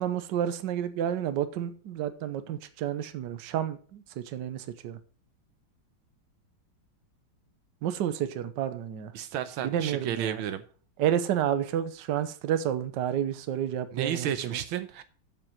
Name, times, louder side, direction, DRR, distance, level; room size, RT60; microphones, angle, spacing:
voice 1, 0.0-5.0 7.8-9.1 9.6-10.4 11.0-14.3, right 10 dB, 65° right, 1.4 m, -30 dB
voice 2, 9.1-10.6 13.9-15.0, right 9 dB, 85° right, 1.6 m, -32 dB
7.7 x 7.4 x 6.1 m
omnidirectional pair, 2.2 m